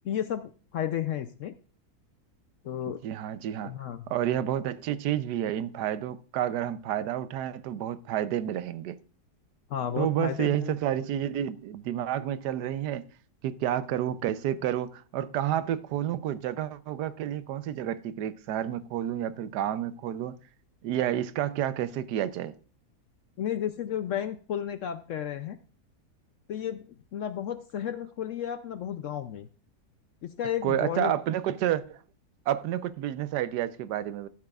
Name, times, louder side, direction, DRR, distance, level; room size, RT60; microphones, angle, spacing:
voice 1, 0.0-1.6 2.6-3.0 3.6-4.1 9.7-10.7 23.4-25.6 26.5-26.9 27.1-29.5 30.2-31.1, left 10 dB, 70° left, 0.8 m, -32 dB
voice 2, 3.0-3.8 4.1-9.0 10.0-13.1 13.4-20.4 20.8-22.5 30.6-32.0 32.5-34.3, right 11 dB, 85° right, 1.2 m, -30 dB
14.5 x 8.5 x 2.4 m
omnidirectional pair, 1.7 m